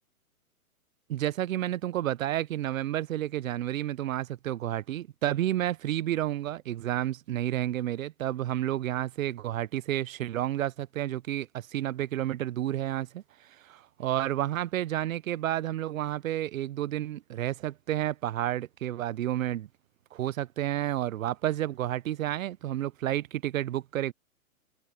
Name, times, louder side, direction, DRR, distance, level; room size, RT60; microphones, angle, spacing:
voice 1, 1.1-19.7 20.1-24.1, right 13 dB, 65° right, 1.0 m, -31 dB
hypercardioid pair, 130°, 44 cm